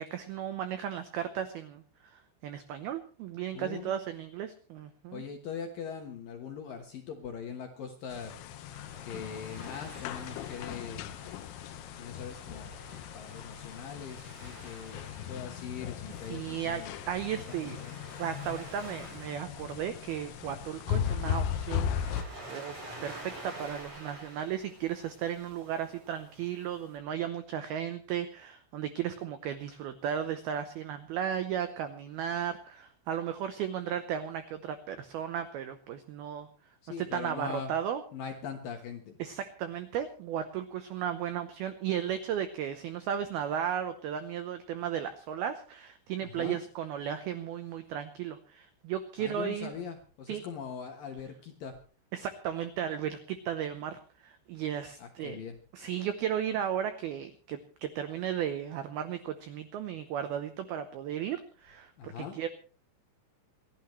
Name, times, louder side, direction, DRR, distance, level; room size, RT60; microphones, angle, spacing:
voice 1, 0.0-5.2 16.3-17.8 18.2-22.8 23.0-36.5 37.0-38.0 39.2-49.7 50.3-50.4 52.1-55.4 55.7-62.5, right 9 dB, 85° right, 10 dB, 2.2 m, -35 dB
voice 2, 3.5-3.9 5.1-8.3 9.0-11.1 12.0-12.8 13.1-15.0 15.3-17.0 17.3-18.0 36.8-37.7 38.1-39.2 46.2-46.6 49.2-51.7 55.0-55.6 62.0-62.4, left 6 dB, 70° left, 4 dB, 2.2 m, -41 dB
sound 1, 8.1-22.2, left 9 dB, 85° left, 2.2 m, -38 dB
Waves surf, 8.2-27.0, right 1 dB, 25° right, 8.4 m, -50 dB
28.0 x 12.0 x 3.2 m, 0.38 s
omnidirectional pair, 5.7 m